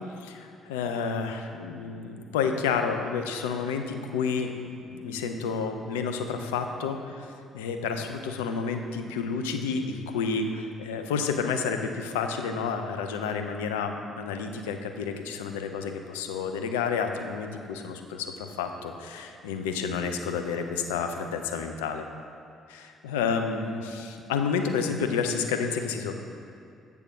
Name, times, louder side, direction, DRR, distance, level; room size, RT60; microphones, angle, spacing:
voice 1, 0.2-22.0 22.7-26.1, left 5 dB, 80° left, 5 dB, 0.4 m, -30 dB
8.1 x 3.5 x 6.0 m, 2.4 s
hypercardioid pair, 45°, 0 cm